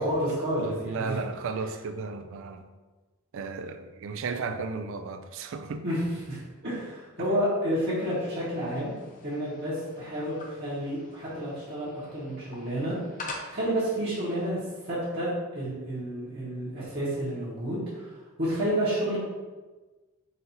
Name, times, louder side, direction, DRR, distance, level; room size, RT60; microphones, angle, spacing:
voice 1, 0.0-1.2 5.8-8.9 9.2-13.0 13.5-15.3 15.5-19.2, equal, 50° right, 1.2 m, -30 dB
voice 2, 0.6-2.6 3.3-5.8, right 4 dB, 65° right, 0.4 m, -34 dB
sound 1, 7.9-14.5, left 2 dB, 40° left, 0.6 m, -46 dB
4.1 x 2.6 x 4.2 m
head